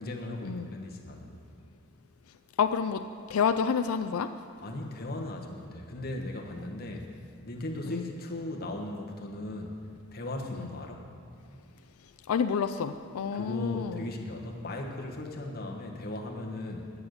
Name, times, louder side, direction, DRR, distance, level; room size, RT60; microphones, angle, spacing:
voice 1, 0.0-1.4 4.6-7.1 7.4-9.8 10.1-11.1 13.3-16.9, left 1 dB, 45° left, 1 dB, 1.2 m, -37 dB
voice 2, 2.6-4.3 7.9-8.1 10.5-10.7 12.3-14.1, left 6 dB, 90° left, 10 dB, 0.4 m, -29 dB
9.8 x 9.5 x 6.5 m, 2.4 s
head